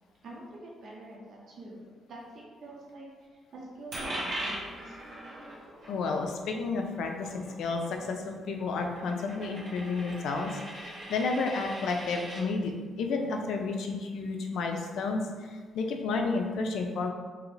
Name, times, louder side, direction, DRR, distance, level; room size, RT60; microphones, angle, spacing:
voice 1, 0.2-1.8 2.1-5.0, right 2 dB, 60° right, -4 dB, 0.7 m, -46 dB
Coin (dropping), 3.9-12.4, right 1 dB, 85° right, 1.2 m, -41 dB
voice 2, 5.9-17.1, left 3 dB, 75° left, 3 dB, 0.4 m, -31 dB
2.9 x 2.5 x 3.1 m, 1.5 s
cardioid pair, 90°, 0 cm